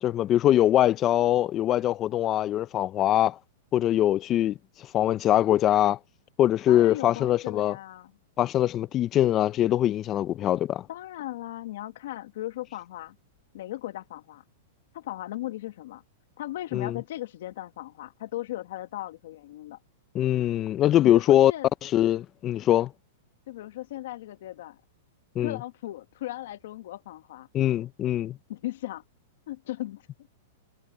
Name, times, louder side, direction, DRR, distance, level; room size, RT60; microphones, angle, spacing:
voice 1, 0.0-3.4 3.7-4.6 4.9-6.0 6.4-7.8 8.4-10.9 16.7-17.0 20.1-21.5 21.8-22.9 25.4-25.6 27.5-28.4, left 12 dB, 25° left, 0.4 m, -23 dB
voice 2, 6.7-8.1 10.9-13.2 13.5-14.4 14.9-16.0 16.4-19.8 21.0-21.7 23.5-24.8 25.4-27.5 28.5-29.0 29.5-30.0, left 15 dB, 65° left, 1.2 m, -37 dB
supercardioid pair, 150°, 0 cm